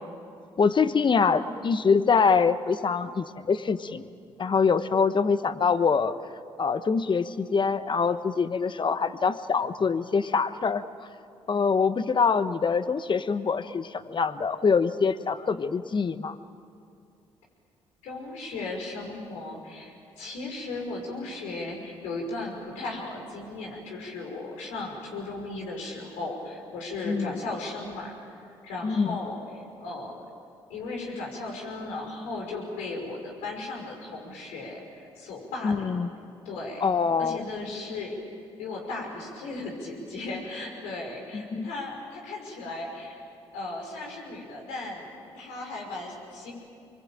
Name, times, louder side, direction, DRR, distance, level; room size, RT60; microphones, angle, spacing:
voice 1, 0.6-4.0 4.4-6.1 6.6-10.8 11.5-16.4 27.1-27.4 28.8-29.2 35.6-36.1 36.8-37.4 41.3-41.7, left 5 dB, 40° left, 12 dB, 1.2 m, -24 dB
voice 2, 18.0-30.2 30.7-36.0 36.5-36.9 37.2-38.1 38.6-43.2 43.5-46.5, left 2 dB, 85° left, 0 dB, 5.6 m, -36 dB
25.5 x 23.0 x 9.0 m, 2.4 s
supercardioid pair, 55°, 12 cm